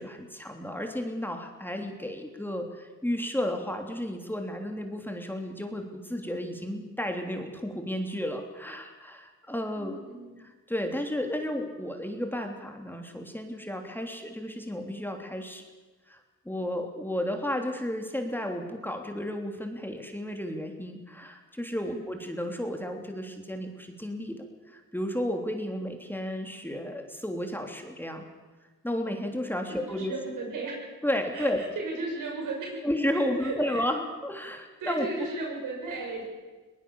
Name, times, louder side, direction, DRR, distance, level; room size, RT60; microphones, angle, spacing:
voice 1, 0.0-10.0 10.7-15.6 16.1-16.2 16.4-28.2 28.8-30.2 31.0-31.6 32.8-35.1, left 1 dB, 5° left, 4 dB, 3.1 m, -33 dB
voice 2, 9.7-10.4 21.8-22.0 29.7-30.8 31.3-33.8 34.8-36.3, right 3 dB, 85° right, 0 dB, 6.8 m, -36 dB
21.5 x 19.5 x 7.1 m, 1.3 s
cardioid pair, 75°, 31 cm